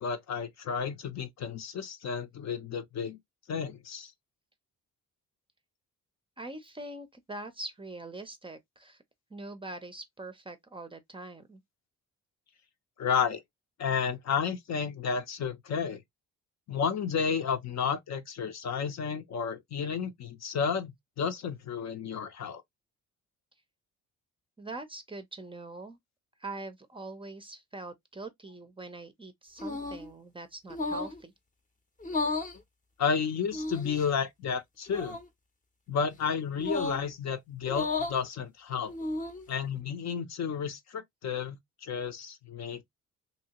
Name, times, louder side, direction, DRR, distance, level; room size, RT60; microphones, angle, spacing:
voice 1, 0.0-3.2 3.5-4.1 13.0-13.4 13.8-16.0 16.7-22.6 33.0-35.2 35.9-38.9 39.5-42.8, left 6 dB, 55° left, 0.7 m, -32 dB
voice 2, 6.4-9.0 9.3-11.6 24.6-26.0 26.4-31.3, right 2 dB, 15° right, 0.5 m, -43 dB
sound 1, 29.6-30.1 30.7-31.2 32.0-32.6 33.5-34.1 34.9-35.2 36.6-37.0 37.6-38.2 38.9-39.4, left 3 dB, 25° left, 0.7 m, -33 dB
2.8 x 2.7 x 2.8 m
cardioid pair, 115°, 32 cm